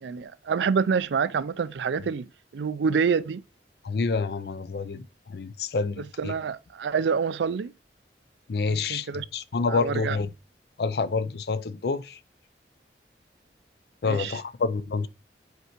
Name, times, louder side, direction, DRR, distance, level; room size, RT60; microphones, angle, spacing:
voice 1, 0.0-3.4 6.0-7.7 8.7-9.2 9.7-10.2 14.1-14.4, right 6 dB, 85° right, 0.4 m, -27 dB
voice 2, 3.8-6.3 8.5-10.3 10.8-12.2 14.0-15.1, left 4 dB, 65° left, 0.4 m, -28 dB
8.0 x 4.5 x 2.9 m
head